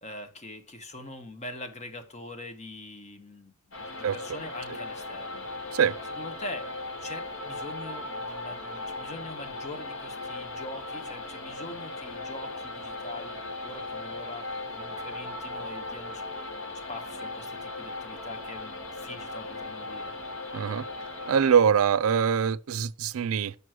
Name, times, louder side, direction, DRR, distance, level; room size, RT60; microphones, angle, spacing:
voice 1, 0.0-5.8 6.2-16.2 16.9-20.1, left 1 dB, 35° left, 1.2 m, -43 dB
sound 1, 3.7-21.6, left 2 dB, 70° left, 2.0 m, -38 dB
voice 2, 20.5-20.8 21.3-23.5, right 7 dB, 75° right, 0.4 m, -23 dB
6.2 x 5.3 x 6.2 m
head